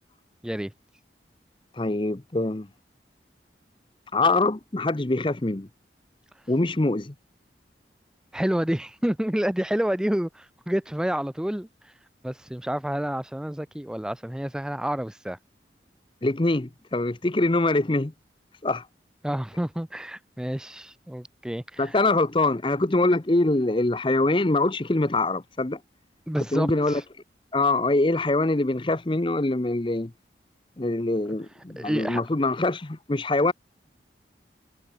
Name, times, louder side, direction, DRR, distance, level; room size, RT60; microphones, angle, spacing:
voice 1, 1.8-2.7 4.1-5.7 6.5-7.1 16.2-18.1 18.6-18.9 21.8-25.8 26.5-27.0 27.5-30.1 30.8-33.5, left 2 dB, 30° left, 0.8 m, -24 dB
voice 2, 8.3-11.7 12.2-15.4 19.2-22.0 26.3-27.0 31.8-32.2, equal, 5° right, 0.3 m, -29 dB
head